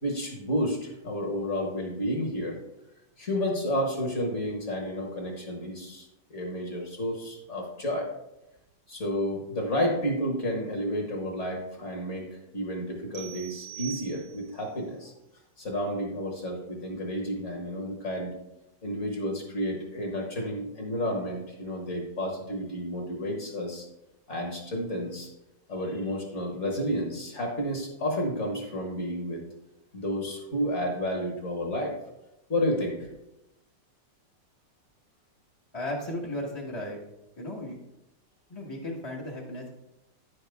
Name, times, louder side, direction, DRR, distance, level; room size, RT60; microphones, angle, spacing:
voice 1, 0.0-2.6 3.2-8.1 8.9-15.1 15.6-18.3 18.8-23.9 24.3-25.3 25.7-29.4 29.9-32.0 32.5-33.1, equal, 45° left, 1 dB, 1.6 m, -31 dB
sound 1, 13.1-14.7, right 13 dB, 70° right, 1.2 m, -43 dB
voice 2, 35.7-37.0 37.4-37.8 38.5-39.7, left 1 dB, 20° left, -3 dB, 0.8 m, -35 dB
9.8 x 6.4 x 3.4 m, 0.89 s
omnidirectional pair, 1.9 m